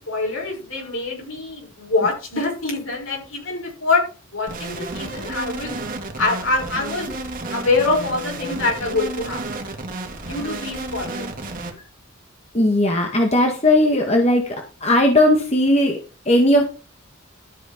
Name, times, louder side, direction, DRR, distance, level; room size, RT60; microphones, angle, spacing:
voice 1, 0.0-4.1 4.3-5.8 6.2-7.2 7.5-9.4 10.2-11.3, left 3 dB, 70° left, 0 dB, 6.2 m, -24 dB
sound 1, 4.5-11.7, right 2 dB, 40° right, 2.2 m, -32 dB
voice 2, 12.5-16.0 16.2-16.6, left 1 dB, 30° left, 2 dB, 1.7 m, -17 dB
13.0 x 6.3 x 5.1 m, 0.34 s
head